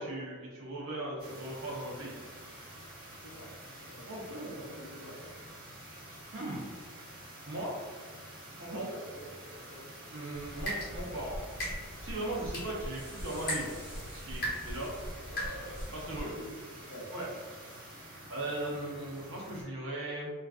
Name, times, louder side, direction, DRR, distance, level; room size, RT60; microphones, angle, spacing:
voice 1, 0.0-2.1 4.1-4.6 6.3-6.7 7.5-7.8 8.6-8.9 10.1-11.4 12.0-13.7 14.1-14.9 15.3-16.4 17.1-17.3 18.3-20.3, right 1 dB, 55° right, -4 dB, 0.7 m, -38 dB
sound 1, 1.2-19.6, right 1 dB, 40° right, 1.0 m, -49 dB
voice 2, 3.8-5.3 8.9-9.8 16.3-16.5 16.9-17.1, equal, 75° left, -2 dB, 0.6 m, -48 dB
sound 2, 10.3-16.2, equal, 45° left, 0.8 m, -39 dB
sound 3, 12.9-15.2 15.7-16.4, equal, 5° right, 0.3 m, -54 dB
2.3 x 2.3 x 2.4 m, 1.5 s
head